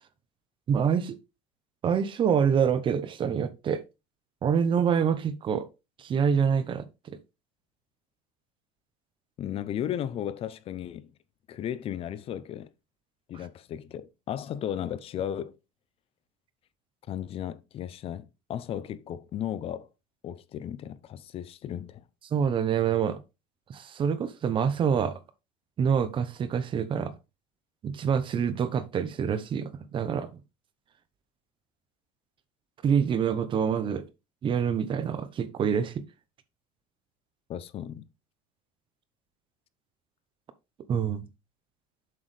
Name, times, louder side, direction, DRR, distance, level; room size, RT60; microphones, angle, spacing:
voice 1, 0.7-1.2 1.8-3.8 4.4-5.7 6.0-7.2 22.3-23.2 23.7-25.2 25.8-27.1 27.8-30.3 32.8-34.0 34.4-36.0 40.9-41.2, right 7 dB, 30° right, 0.8 m, -26 dB
voice 2, 9.4-11.1 11.5-12.7 13.3-15.6 17.1-19.9 20.2-22.0 37.5-38.0, left 10 dB, 35° left, 0.5 m, -35 dB
7.6 x 6.2 x 3.3 m
cardioid pair, 145°, 16 cm